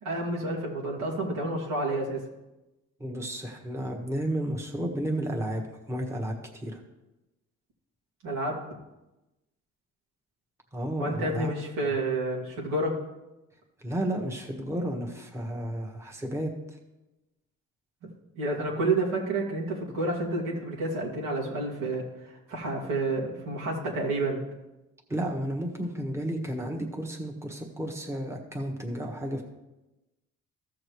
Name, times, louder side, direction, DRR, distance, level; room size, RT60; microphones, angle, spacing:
voice 1, 0.0-2.2 8.2-8.6 11.0-12.9 18.4-24.4, right 2 dB, 90° right, -3 dB, 2.4 m, -29 dB
voice 2, 3.0-6.3 6.6-6.8 10.7-11.5 11.8-11.9 13.8-16.5 25.1-29.4, right 1 dB, 10° right, 1 dB, 1.5 m, -32 dB
15.0 x 6.5 x 3.2 m, 1.0 s
cardioid pair, 90°, 30 cm